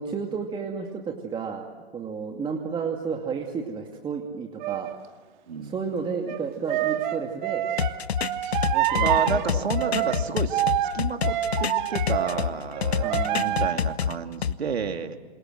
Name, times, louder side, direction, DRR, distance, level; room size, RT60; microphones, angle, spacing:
voice 1, 0.0-1.7 1.9-4.9 5.6-7.7 8.6-9.6 13.0-13.9, right 5 dB, 15° right, 2 dB, 2.4 m, -32 dB
sound 1, 4.6-4.9 6.3-12.5 12.7-13.7, right 13 dB, 50° right, 2.1 m, -27 dB
sound 2, 7.8-12.5 12.8-14.5, left 8 dB, 85° left, 1.1 m, -27 dB
voice 2, 9.0-15.2, right 5 dB, 85° right, 6 dB, 2.7 m, -31 dB
27.5 x 27.5 x 7.8 m, 1.3 s
hypercardioid pair, 125°, 31 cm